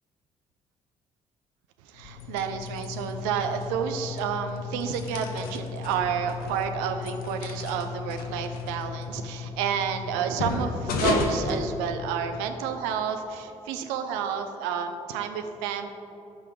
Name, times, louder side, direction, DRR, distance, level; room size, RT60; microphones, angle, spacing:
voice 1, 1.8-15.9, right 7 dB, 65° right, 7 dB, 0.6 m, -30 dB
sound 1, 1.9-12.4, left 4 dB, 55° left, 0.9 m, -33 dB
13.5 x 5.7 x 3.9 m, 2.9 s
figure-of-eight pair, 45°, 17 cm